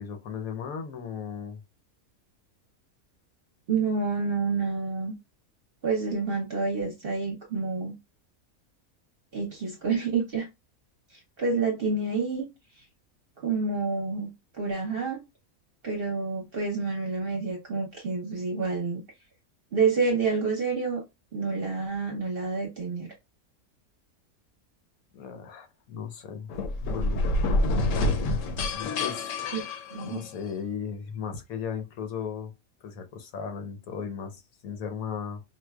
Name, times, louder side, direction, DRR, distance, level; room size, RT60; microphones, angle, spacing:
voice 1, 0.0-1.6 25.1-26.5 26.8-27.4 28.7-29.4 30.0-32.5 32.8-35.4, left 7 dB, 85° left, 1.2 m, -36 dB
voice 2, 3.7-5.1 5.8-7.9 9.3-10.5 11.1-12.5 13.4-14.3 14.6-15.2 15.8-19.0 19.7-21.0 21.3-23.1 29.5-29.7 29.9-30.2, right 4 dB, 50° right, 0.8 m, -28 dB
sound 1, 26.5-30.5, left 2 dB, 70° left, 0.9 m, -27 dB
4.4 x 2.2 x 2.2 m
omnidirectional pair, 1.5 m